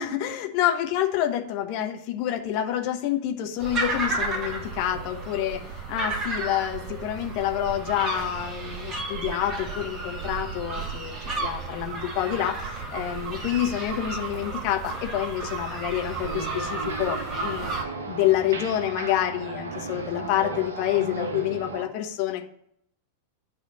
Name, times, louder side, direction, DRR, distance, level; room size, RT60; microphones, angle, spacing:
voice 1, 0.0-11.1 11.4-17.7 18.1-22.4, left 12 dB, 45° left, 4 dB, 1.0 m, -28 dB
sound 1, 3.6-17.9, right 3 dB, 30° right, 1.4 m, -32 dB
sound 2, 16.2-21.9, right 3 dB, 65° right, 1.0 m, -35 dB
10.0 x 3.5 x 7.2 m, 0.71 s
figure-of-eight pair, 90°, 0 cm